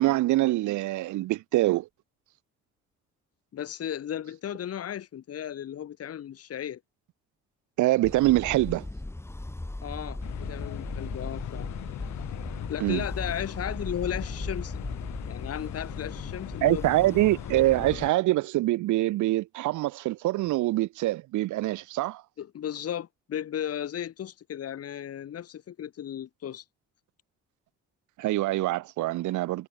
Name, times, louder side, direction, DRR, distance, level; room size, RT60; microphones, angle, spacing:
voice 1, 0.0-1.9 7.8-8.9 12.8-13.0 16.6-22.2 28.2-29.7, right 17 dB, 75° right, 0.6 m, -25 dB
voice 2, 3.5-6.8 9.8-11.7 12.7-14.8 15.3-16.9 22.4-26.6, left 10 dB, 50° left, 1.2 m, -35 dB
sound 1, 8.0-18.1, left 2 dB, 10° left, 1.3 m, -38 dB
sound 2, 10.2-18.1, left 15 dB, 70° left, 0.7 m, -40 dB
cardioid pair, 90°, 30 cm